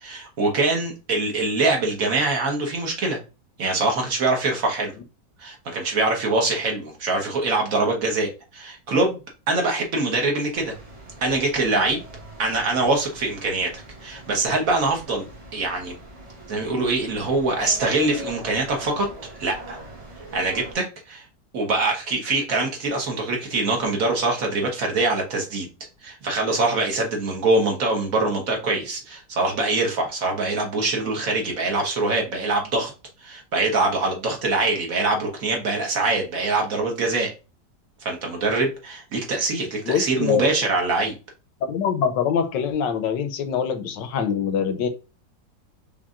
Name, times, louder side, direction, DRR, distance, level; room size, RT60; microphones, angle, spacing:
voice 1, 0.0-3.2 3.6-4.9 5.4-9.2 9.5-10.7 11.2-12.0 12.4-15.3 15.5-15.9 16.5-19.8 20.3-21.2 21.5-25.7 26.0-32.9 33.2-37.3 38.0-41.1, right 2 dB, 55° right, 1 dB, 1.3 m, -24 dB
sound 1, 10.5-20.8, right 1 dB, 25° right, 0.9 m, -41 dB
voice 2, 39.8-40.4 41.6-44.9, left 7 dB, 85° left, 8 dB, 1.3 m, -24 dB
5.3 x 2.6 x 2.4 m, 0.30 s
omnidirectional pair, 1.9 m